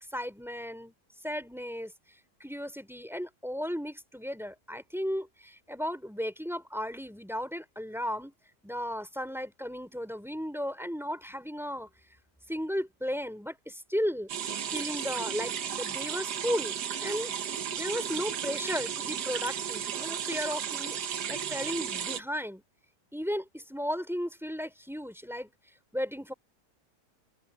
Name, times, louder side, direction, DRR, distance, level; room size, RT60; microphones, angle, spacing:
voice 1, 0.1-0.9 1.2-1.9 2.4-8.3 8.6-11.9 12.5-14.3 14.7-16.8 17.0-17.3 17.7-22.6 23.1-25.5 25.9-26.3, equal, ahead, 3.7 m, -35 dB
sound 1, 14.3-22.2, right 8 dB, 70° right, 1.7 m, -34 dB
omnidirectional pair, 1.9 m